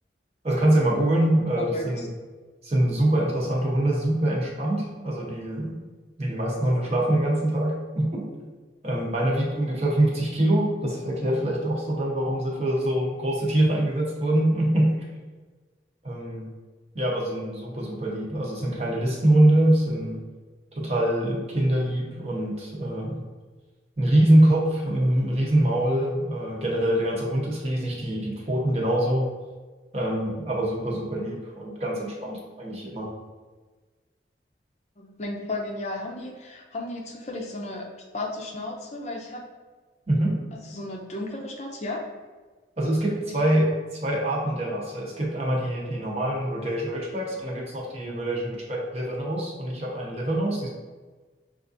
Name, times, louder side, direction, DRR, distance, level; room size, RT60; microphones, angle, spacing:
voice 1, 0.4-2.1 2.6-5.8 6.2-8.3 8.8-14.9 16.0-16.5 16.9-20.2 20.7-23.2 24.0-29.3 29.9-33.1 40.1-40.4 42.8-50.7, right 1 dB, 35° right, -3 dB, 0.8 m, -24 dB
voice 2, 1.6-1.9 35.0-39.5 40.5-42.1 43.2-43.4 45.9-46.0, left 2 dB, 40° left, 1 dB, 0.5 m, -34 dB
5.8 x 2.5 x 2.6 m, 1.3 s
head